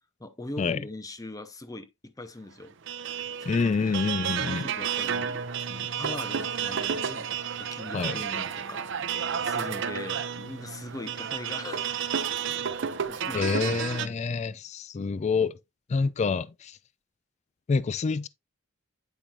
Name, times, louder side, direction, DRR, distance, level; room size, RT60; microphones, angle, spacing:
voice 1, 0.2-2.8 3.2-3.9 4.4-8.9 9.4-12.1 12.5-12.7 13.1-14.2, left 2 dB, 15° left, 0.7 m, -41 dB
sound 1, 2.9-14.1, right 7 dB, 60° right, 0.6 m, -31 dB
voice 2, 3.5-4.6 7.9-8.2 13.3-15.5 15.9-16.7 17.7-18.3, left 4 dB, 35° left, 0.3 m, -27 dB
8.9 x 4.9 x 2.9 m
head